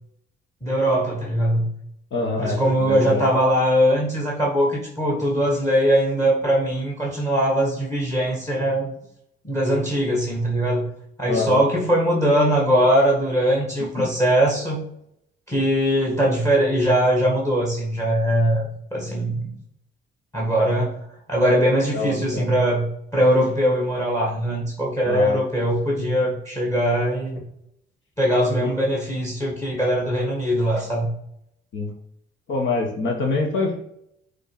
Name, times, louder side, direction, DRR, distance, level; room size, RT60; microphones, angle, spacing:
voice 1, 0.6-1.7 2.4-8.9 9.4-10.9 11.2-14.8 15.5-19.6 20.3-27.4 28.2-31.1, equal, 15° left, -2 dB, 1.8 m, -21 dB
voice 2, 2.1-3.2 11.3-11.6 14.0-14.1 21.9-22.5 25.0-25.4 28.6-28.7 31.7-31.9 32.5-33.9, left 3 dB, 70° left, 1 dB, 1.6 m, -25 dB
6.5 x 3.7 x 6.1 m, 0.75 s
cardioid pair, 90°, 20 cm